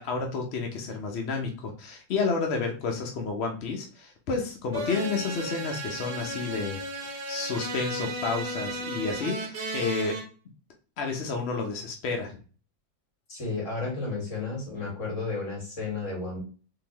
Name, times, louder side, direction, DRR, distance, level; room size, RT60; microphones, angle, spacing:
voice 1, 0.0-6.8 7.1-10.2 11.0-12.4, left 4 dB, 65° left, 2 dB, 0.6 m, -30 dB
sound 1, 4.7-10.2, right 1 dB, 45° right, 1.1 m, -34 dB
voice 2, 13.3-16.4, left 3 dB, 40° left, -1 dB, 1.9 m, -32 dB
3.8 x 3.0 x 2.9 m, 0.37 s
omnidirectional pair, 2.0 m